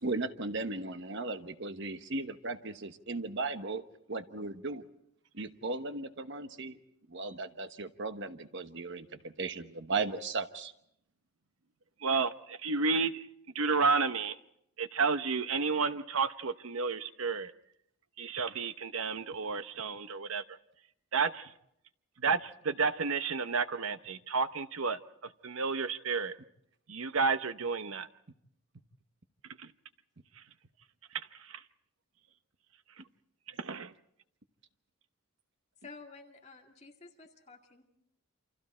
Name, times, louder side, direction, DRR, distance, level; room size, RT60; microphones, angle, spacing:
voice 1, 0.0-3.8 4.1-4.8 5.3-6.8 7.1-10.7, right 3 dB, 55° right, 9 dB, 1.1 m, -36 dB
voice 2, 12.0-13.3 13.5-14.4 14.8-17.5 18.2-20.4 21.1-21.5 22.2-25.0 25.4-26.4 26.9-28.1 29.6-29.7 31.5-31.6 33.6-33.9, right 4 dB, 70° right, 11 dB, 0.9 m, -31 dB
voice 3, 35.8-37.9, left 4 dB, 30° left, 1 dB, 2.2 m, -52 dB
28.5 x 26.0 x 4.4 m, 0.75 s
head